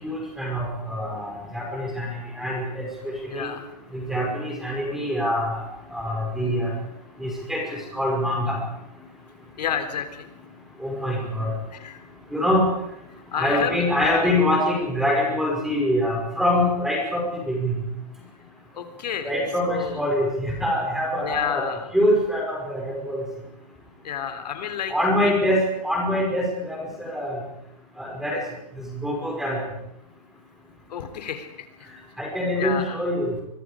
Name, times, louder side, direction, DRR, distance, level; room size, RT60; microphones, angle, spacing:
voice 1, 0.0-2.1 2.3-2.8 3.3-3.5 3.9-5.6 5.9-6.7 7.2-7.6 7.9-8.6 10.8-11.5 12.3-12.7 13.4-17.7 19.2-21.7 21.9-23.2 24.9-27.4 28.0-28.4 29.0-29.6 32.2-33.3, left 1 dB, ahead, -1 dB, 5.3 m, -24 dB
voice 2, 3.3-3.7 9.6-10.3 11.7-12.0 13.3-14.4 18.7-19.3 19.6-20.0 21.2-21.9 24.0-25.3 30.9-31.9 32.6-33.0, left 8 dB, 75° left, 8 dB, 3.4 m, -30 dB
26.5 x 24.0 x 5.1 m, 0.81 s
supercardioid pair, 175°, 21 cm